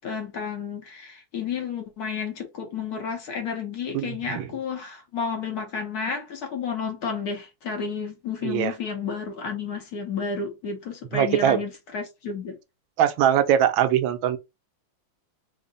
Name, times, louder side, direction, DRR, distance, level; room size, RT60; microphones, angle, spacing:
voice 1, 0.0-12.6, left 5 dB, 60° left, 1.1 m, -31 dB
voice 2, 3.9-4.5 8.4-8.7 11.1-11.6 13.0-14.4, right 10 dB, 85° right, 1.3 m, -22 dB
3.6 x 2.0 x 3.8 m
omnidirectional pair, 2.1 m